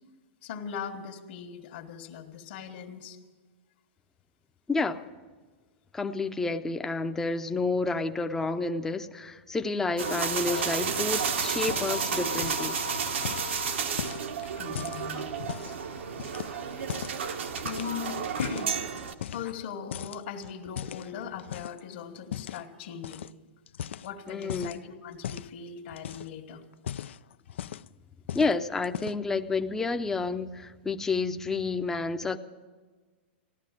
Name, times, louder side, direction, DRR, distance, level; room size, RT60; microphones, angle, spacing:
voice 1, 0.4-3.2 14.6-15.3 16.7-17.0 17.6-18.8 19.3-23.3 24.0-26.6, left 7 dB, 60° left, 2 dB, 1.6 m, -39 dB
voice 2, 4.7-5.0 5.9-12.8 24.3-24.8 28.3-32.4, left 3 dB, 5° left, 8 dB, 0.6 m, -30 dB
sound 1, 10.0-19.1, right 5 dB, 80° right, 1.4 m, -31 dB
sound 2, 11.7-12.1 12.3-12.7 13.2-15.8 16.2-17.2 17.6-18.7 19.2-19.7 19.9-21.8 22.3-22.6 23.0-23.3 23.7-24.8 25.2-25.5 25.9-26.4 26.7-28.0 28.3-28.6 28.8-29.3, left 10 dB, 80° left, 0.4 m, -38 dB
16.0 x 11.5 x 7.5 m, 1.4 s
hypercardioid pair, 155°, 6 cm